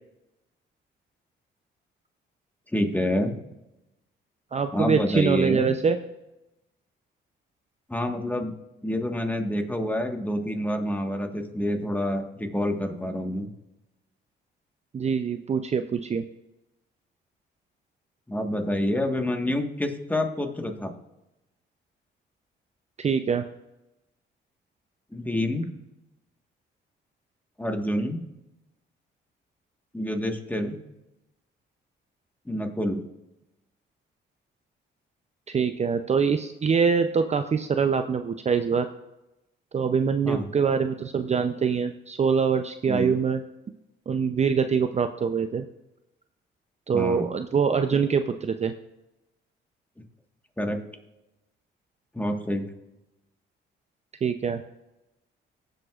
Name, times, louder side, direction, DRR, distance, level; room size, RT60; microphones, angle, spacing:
voice 1, 2.7-3.4 4.7-5.7 7.9-8.5 8.8-13.5 18.3-20.9 25.1-25.7 27.6-28.2 29.9-30.8 32.4-33.0 40.2-40.5 42.9-43.2 46.9-47.3 50.6-50.8 52.1-52.7, left 1 dB, 10° left, 4 dB, 1.4 m, -27 dB
voice 2, 4.5-6.0 14.9-16.2 23.0-23.4 35.5-38.9 39.7-43.4 44.1-45.6 46.9-48.7 54.2-54.6, right 6 dB, 35° right, 8 dB, 0.5 m, -24 dB
18.5 x 7.8 x 2.4 m, 0.95 s
cardioid pair, 90°, 20 cm